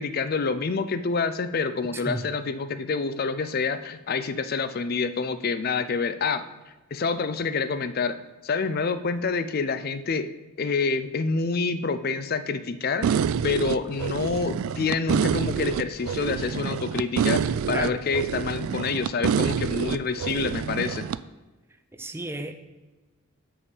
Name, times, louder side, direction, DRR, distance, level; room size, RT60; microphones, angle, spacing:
voice 1, 0.0-6.4 6.9-8.2 8.4-10.3 10.6-21.1, left 4 dB, 45° left, 0.4 m, -27 dB
voice 2, 1.9-2.3 17.7-18.0 21.9-22.5, right 1 dB, 10° right, 0.5 m, -33 dB
sound 1, 13.0-21.2, right 7 dB, 75° right, 0.3 m, -27 dB
6.8 x 5.3 x 7.2 m
head